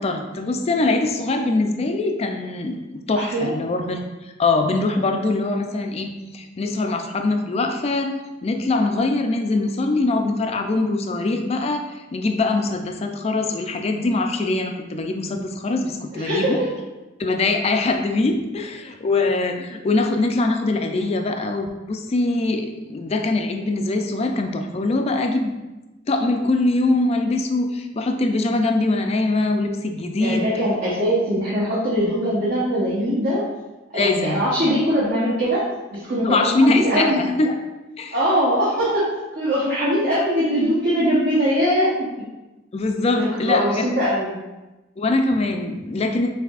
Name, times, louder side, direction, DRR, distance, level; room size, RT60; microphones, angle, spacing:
voice 1, 0.0-2.8 3.1-4.0 4.4-8.1 8.4-16.6 17.2-25.5 26.1-30.4 33.9-34.4 36.2-37.5 38.0-38.1 42.7-43.8 45.0-46.3, left 2 dB, 35° left, 5 dB, 0.4 m, -22 dB
voice 2, 3.2-3.5 16.1-16.7 30.1-33.4 33.9-35.6 35.9-37.2 38.1-39.1 39.3-41.9 43.1-44.4, equal, 55° right, -9 dB, 0.9 m, -21 dB
6.8 x 2.7 x 2.4 m, 1.1 s
head